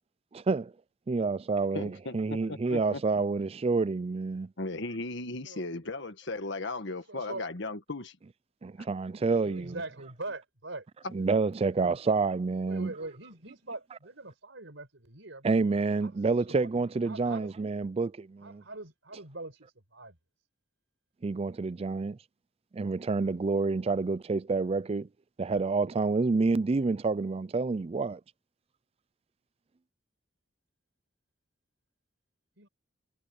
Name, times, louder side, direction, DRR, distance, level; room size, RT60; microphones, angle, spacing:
voice 1, 0.3-0.7 1.1-4.5 8.6-9.8 11.1-12.9 15.4-18.6 21.2-22.2 22.7-25.1 25.4-28.2, right 4 dB, 30° right, 0.4 m, -28 dB
voice 2, 1.7-2.2 2.5-3.2 4.6-8.2, left 2 dB, 65° left, 1.6 m, -36 dB
voice 3, 7.1-7.5 9.2-10.9 11.2-11.3 11.6-12.2 12.7-15.6 16.0-16.7 17.1-17.5 18.4-20.2 32.6-32.7, right 2 dB, 70° right, 5.9 m, -43 dB
head